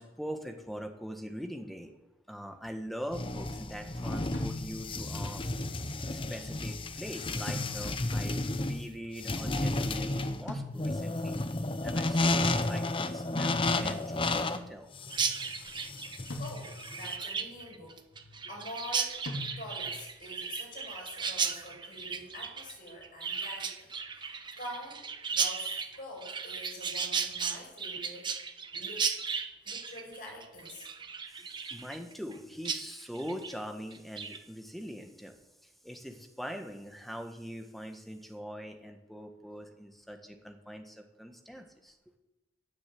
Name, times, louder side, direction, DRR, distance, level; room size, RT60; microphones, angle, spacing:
voice 1, 0.0-1.9 2.3-5.4 6.1-11.4 11.8-14.9 31.3-35.3 35.6-42.0, equal, ahead, 5 dB, 1.7 m, -42 dB
sound 1, 3.1-17.1, left 2 dB, 30° left, 0.9 m, -32 dB
sound 2, 4.3-5.1 7.5-8.2 10.5-11.2 13.4-14.1 16.3-17.1 19.2-20.0, left 1 dB, 85° left, 3.0 m, -41 dB
Chirp tweet, 15.1-32.4 32.6-32.8 33.1-33.5 33.9-34.4, right 6 dB, 25° right, 1.2 m, -35 dB
voice 2, 16.4-19.2 19.6-28.3 28.7-29.1 29.6-30.9, left 1 dB, 50° left, 0 dB, 7.0 m, -46 dB
17.0 x 10.5 x 7.9 m, 0.99 s
head